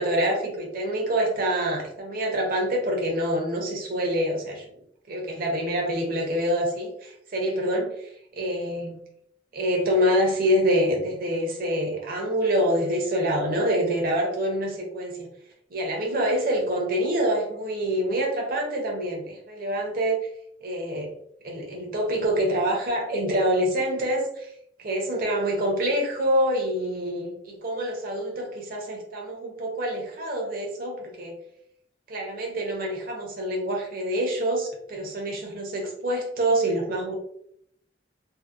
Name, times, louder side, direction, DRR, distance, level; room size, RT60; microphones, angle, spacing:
voice 1, 0.0-4.6 5.1-9.0 9.5-15.3 15.7-20.2 20.6-21.1 21.4-24.5 24.8-31.3 32.1-37.2, equal, 55° right, 0 dB, 0.7 m, -26 dB
2.7 x 2.1 x 2.3 m, 0.70 s
head